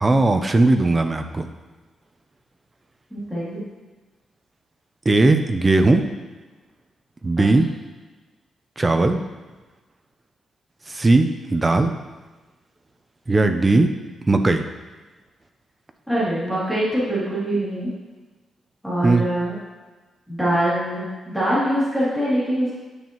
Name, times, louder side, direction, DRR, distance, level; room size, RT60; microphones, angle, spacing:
voice 1, 0.0-1.5 5.1-6.1 7.2-7.7 8.8-9.2 10.9-11.9 13.3-13.9 14.2-14.6 19.0-19.2, right 2 dB, 20° right, 7 dB, 0.5 m, -18 dB
voice 2, 3.1-3.6 7.4-7.5 16.1-17.9 18.8-19.5 20.3-22.7, right 1 dB, ahead, -10 dB, 2.7 m, -23 dB
9.7 x 7.3 x 3.0 m, 1.3 s
wide cardioid pair, 160°, 0 cm